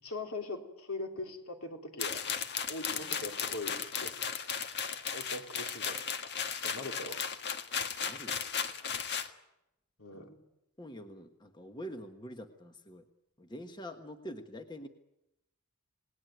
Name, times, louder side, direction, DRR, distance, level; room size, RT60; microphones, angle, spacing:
voice 1, 0.0-2.2 2.7-4.1 5.1-6.0 6.6-7.2 10.0-10.4, left 2 dB, 70° left, 3 dB, 3.9 m, -41 dB
sound 1, 2.0-9.3, left 7 dB, 50° left, 1.7 m, -36 dB
voice 2, 8.0-8.4 10.1-10.2 10.8-13.0 13.4-14.9, equal, 20° left, 6 dB, 1.4 m, -45 dB
28.0 x 19.0 x 9.3 m, 0.90 s
head